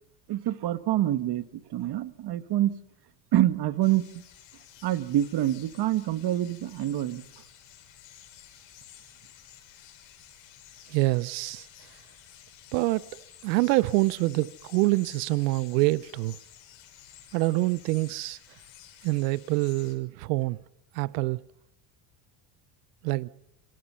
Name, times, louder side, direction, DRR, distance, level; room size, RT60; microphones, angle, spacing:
voice 1, 0.3-1.5 1.7-2.7 3.3-4.0 4.8-7.2, right 13 dB, 50° right, 1.5 m, -26 dB
sound 1, 3.8-19.9, left 11 dB, 70° left, 6.3 m, -52 dB
voice 2, 10.9-11.7 12.7-16.4 17.3-18.4 19.0-20.6 20.9-21.4 23.0-23.3, right 21 dB, 80° right, 0.8 m, -26 dB
26.5 x 22.5 x 5.6 m
supercardioid pair, 90°, 50 cm